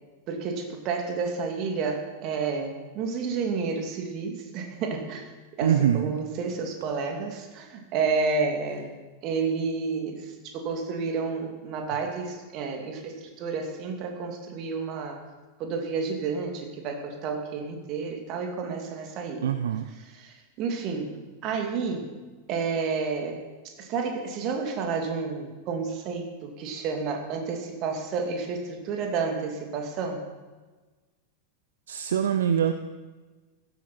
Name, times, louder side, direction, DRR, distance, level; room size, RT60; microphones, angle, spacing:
voice 1, 0.3-5.2 5.5-9.0 9.2-15.2 15.6-19.5 20.0-21.2 21.4-22.1 22.5-30.2, right 4 dB, 40° right, 3 dB, 2.5 m, -30 dB
voice 2, 5.6-6.1 19.4-19.9 31.9-32.7, right 9 dB, 65° right, 9 dB, 0.6 m, -24 dB
16.0 x 13.0 x 4.4 m, 1.3 s
figure-of-eight pair, 90°, 0 cm